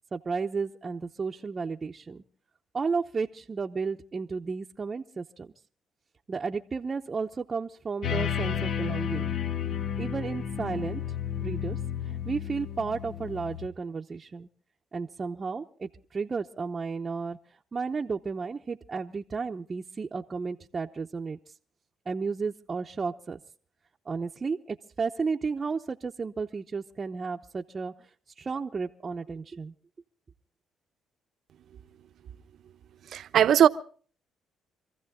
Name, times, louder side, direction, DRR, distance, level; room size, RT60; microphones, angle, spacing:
voice 1, 0.1-2.2 2.7-5.5 6.3-9.3 10.0-11.0 11.4-14.5 14.9-17.4 17.7-21.4 22.1-23.4 24.1-27.9 28.4-29.7, right 4 dB, 35° right, 0.8 m, -33 dB
sound 1, 8.0-13.7, left 9 dB, 65° left, 1.0 m, -32 dB
voice 2, 33.1-33.7, right 9 dB, 65° right, 0.8 m, -19 dB
26.0 x 15.0 x 3.7 m
cardioid pair, 90°, 0 cm